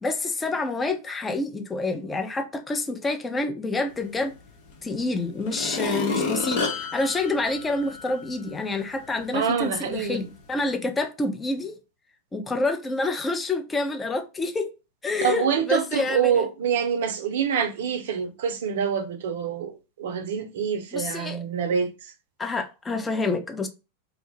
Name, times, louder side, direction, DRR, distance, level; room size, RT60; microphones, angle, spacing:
voice 1, 0.0-4.3 4.8-11.8 12.3-14.7 15.0-16.5 20.9-21.4 22.4-23.7, left 2 dB, 15° left, 0.5 m, -28 dB
sound 1, 4.7-4.8 5.4-8.2 8.7-8.8, left 4 dB, 50° left, 0.7 m, -30 dB
voice 2, 9.3-10.3 15.2-21.9, right 7 dB, 55° right, 0.5 m, -26 dB
2.5 x 2.3 x 3.0 m
figure-of-eight pair, 90°, 0 cm